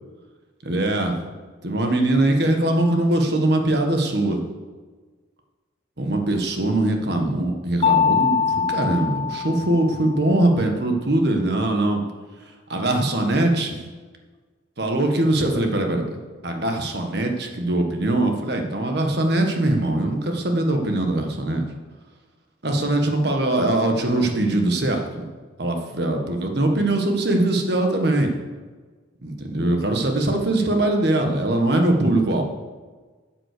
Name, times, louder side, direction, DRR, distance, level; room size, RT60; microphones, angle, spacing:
voice 1, 0.6-1.2 1.6-4.4 6.0-12.0 12.7-13.7 14.8-16.0 16.4-21.6 22.6-25.2 25.6-28.3 29.2-32.4, right 1 dB, 55° right, 3 dB, 1.5 m, -21 dB
Mallet percussion, 7.8-10.3, left 6 dB, 30° left, 0.4 m, -23 dB
9.6 x 7.5 x 6.8 m, 1.4 s
head